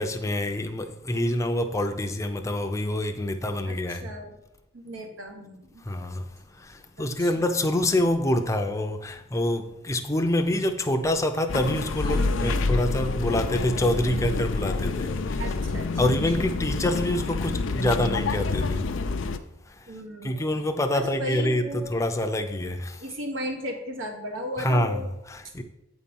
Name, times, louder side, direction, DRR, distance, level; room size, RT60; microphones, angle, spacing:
voice 1, 0.0-4.1 5.8-15.4 16.0-19.0 19.7-19.9 20.2-23.0 24.6-25.0 25.3-25.6, left 1 dB, 15° left, 0.6 m, -26 dB
voice 2, 3.7-4.3 4.7-5.8 7.0-7.5 12.1-12.6 15.4-15.9 16.6-16.7 19.9-20.5 20.9-21.9 23.0-25.1, equal, 75° right, 1.3 m, -36 dB
sound 1, 11.5-19.4, left 3 dB, 75° left, 0.5 m, -28 dB
8.3 x 4.3 x 5.3 m
head